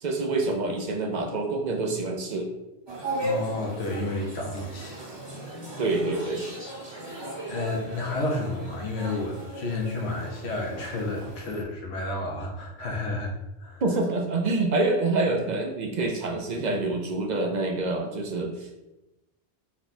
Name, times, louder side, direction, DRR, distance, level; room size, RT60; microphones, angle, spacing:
voice 1, 0.0-2.5 5.8-6.5 13.8-18.8, right 2 dB, 55° right, 3 dB, 0.5 m, -27 dB
sound 1, 2.9-11.6, right 1 dB, 25° right, 1.0 m, -37 dB
voice 2, 3.2-5.0 7.5-13.3 13.6-13.8, left 2 dB, 80° left, -1 dB, 1.0 m, -31 dB
4.3 x 2.2 x 4.1 m, 0.96 s
omnidirectional pair, 1.1 m